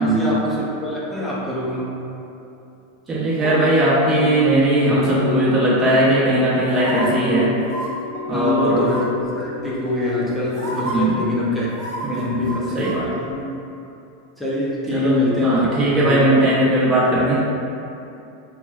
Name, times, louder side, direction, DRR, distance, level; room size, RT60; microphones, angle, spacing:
voice 1, 0.0-1.9 8.3-11.8 12.1-12.8 13.2-13.5 14.4-15.7 16.0-16.6, left 2 dB, 5° left, -7 dB, 0.6 m, -24 dB
voice 2, 3.1-7.5 8.3-8.9 10.8-11.2 12.0-12.4 12.7-13.1 14.9-15.2 15.4-17.4, right 1 dB, 25° right, -9 dB, 1.0 m, -18 dB
sound 1, 3.4-10.3, left 7 dB, 90° left, 0.3 m, -30 dB
sound 2, 6.7-7.0 7.6-7.9 8.8-9.2 10.1-10.2 10.5-11.0 11.7-13.0 13.3-13.4, right 2 dB, 50° right, 1.3 m, -31 dB
4.1 x 2.2 x 2.4 m, 2.7 s
hypercardioid pair, 120°, 0 cm